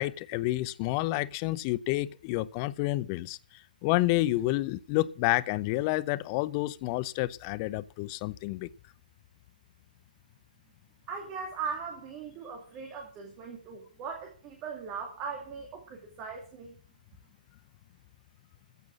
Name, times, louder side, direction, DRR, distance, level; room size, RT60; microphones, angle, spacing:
voice 1, 0.0-8.7, left 18 dB, 25° left, 0.6 m, -29 dB
voice 2, 11.1-16.8, right 5 dB, 20° right, 2.4 m, -39 dB
15.0 x 6.1 x 8.3 m
figure-of-eight pair, 140°, 5 cm